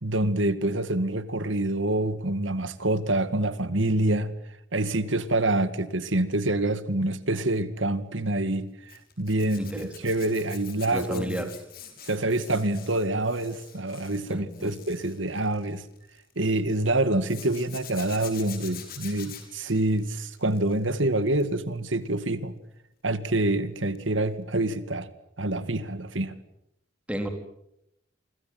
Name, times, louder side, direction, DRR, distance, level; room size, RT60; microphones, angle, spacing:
voice 1, 0.0-4.3 4.7-11.5 12.0-15.8 16.4-22.6 23.0-25.1 25.4-26.3, right 2 dB, 85° right, 12 dB, 2.2 m, -26 dB
Zipper (clothing), 8.9-16.3 17.2-20.9 21.3-21.6 23.9-24.1 24.4-24.5, left 9 dB, 50° left, 5.9 m, -45 dB
voice 2, 9.6-10.1 10.9-11.5 14.3-14.7 27.1-27.3, equal, 5° right, 5 dB, 3.9 m, -33 dB
29.0 x 25.5 x 7.8 m, 0.79 s
head